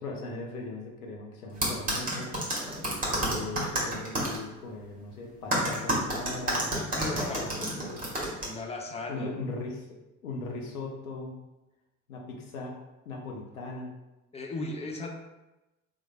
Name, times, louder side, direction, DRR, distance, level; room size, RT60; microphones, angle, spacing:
voice 1, 0.0-2.4 3.2-8.0 9.1-11.3 12.1-12.7 13.0-13.9, left 2 dB, 80° left, 0 dB, 0.7 m, -39 dB
sound 1, 1.6-4.4 5.5-8.4, right 1 dB, 20° right, 1.2 m, -29 dB
voice 2, 6.9-7.7 8.4-9.3 14.3-15.1, left 2 dB, 15° left, 2 dB, 0.5 m, -36 dB
3.6 x 3.1 x 2.2 m, 1.0 s
figure-of-eight pair, 55°, 42 cm